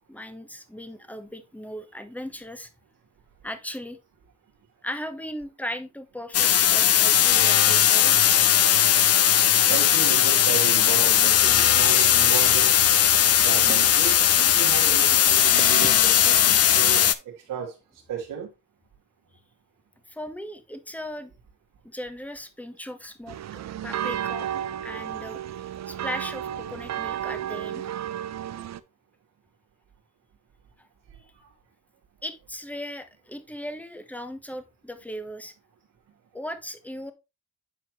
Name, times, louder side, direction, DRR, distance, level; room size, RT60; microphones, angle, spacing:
voice 1, 0.1-2.7 3.4-4.0 4.8-8.2 20.1-21.3 21.8-24.5 24.8-27.8 32.2-35.5 36.3-37.1, left 1 dB, 5° left, 1.3 m, -37 dB
sound 1, 6.3-17.2, left 10 dB, 50° left, 0.6 m, -18 dB
voice 2, 9.7-12.7 13.4-17.7 18.1-18.5, right 7 dB, 80° right, 2.4 m, -34 dB
sound 2, 13.5-14.4 14.7-14.8 15.1-16.6 17.3-17.4 17.6-17.7 17.9-18.2, right 3 dB, 20° right, 1.2 m, -39 dB
sound 3, 23.3-28.8, right 10 dB, 55° right, 0.6 m, -32 dB
9.5 x 4.4 x 3.1 m
supercardioid pair, 60°, 32 cm